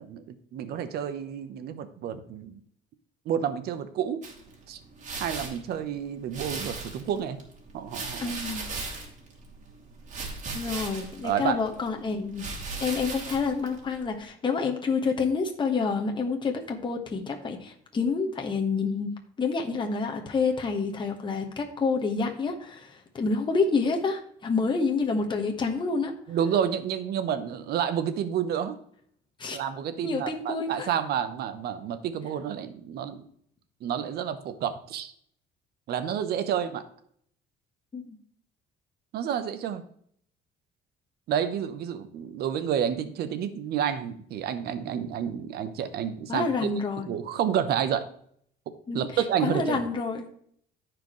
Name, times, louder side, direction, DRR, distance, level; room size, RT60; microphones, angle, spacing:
voice 1, 0.0-2.6 3.3-4.2 4.7-4.8 5.2-7.4 7.7-8.3 11.2-11.6 26.3-28.8 29.5-33.2 33.8-35.1 35.9-36.8 39.1-39.8 41.3-46.5 47.1-48.1 48.9-49.8, right 9 dB, 70° right, 11 dB, 1.0 m, -29 dB
sound 1, 4.2-14.2, right 3 dB, 45° right, 2.6 m, -39 dB
voice 2, 8.2-8.6 10.5-12.4 12.8-19.1 19.4-26.1 29.4-29.6 30.0-30.9 37.9-38.2 46.3-47.1 48.9-49.0 49.4-50.3, left 4 dB, 30° left, 2 dB, 1.4 m, -28 dB
14.5 x 4.9 x 3.2 m, 0.64 s
cardioid pair, 110°, 17 cm